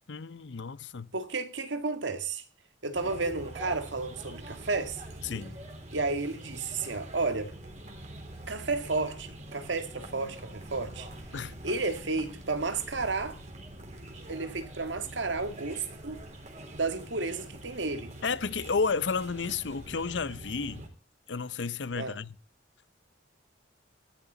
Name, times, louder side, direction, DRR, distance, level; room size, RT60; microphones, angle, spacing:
voice 1, 0.1-1.1 5.2-5.6 11.3-11.6 18.2-20.8 21.3-22.3, left 5 dB, 65° left, 0.7 m, -32 dB
voice 2, 1.1-2.4 2.8-5.0 5.9-7.5 8.5-11.1 11.6-13.4 14.3-16.2 16.7-18.1 22.0-22.2, right 3 dB, 75° right, 1.9 m, -32 dB
sound 1, 2.9-20.9, right 1 dB, 40° right, 3.7 m, -45 dB
16.5 x 14.0 x 3.9 m
head